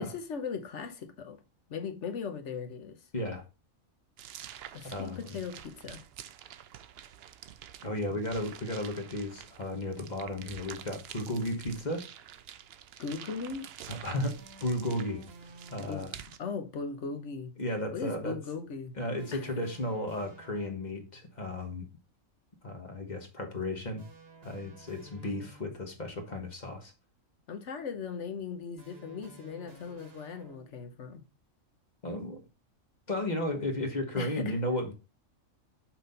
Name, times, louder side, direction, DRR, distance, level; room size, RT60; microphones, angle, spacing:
voice 1, 0.0-1.4 1.7-2.9 4.7-6.0 13.0-13.7 15.8-16.1 16.4-17.5 17.9-18.9 19.3-19.4 27.5-31.2 34.2-34.6, left 5 dB, 60° left, 1.2 m, -38 dB
voice 2, 3.1-3.4 4.9-5.2 7.8-12.1 13.9-15.3 15.7-16.1 17.6-18.4 19.0-21.8 22.6-24.0 24.4-26.9 32.0-32.4 33.1-34.9, left 1 dB, 35° left, 1.2 m, -34 dB
sound 1, 4.2-16.4, right 10 dB, 65° right, 0.6 m, -48 dB
sound 2, 14.4-16.2 19.2-21.1 24.0-25.9 28.8-31.0, right 2 dB, 50° right, 1.3 m, -53 dB
6.0 x 4.1 x 5.3 m
omnidirectional pair, 1.4 m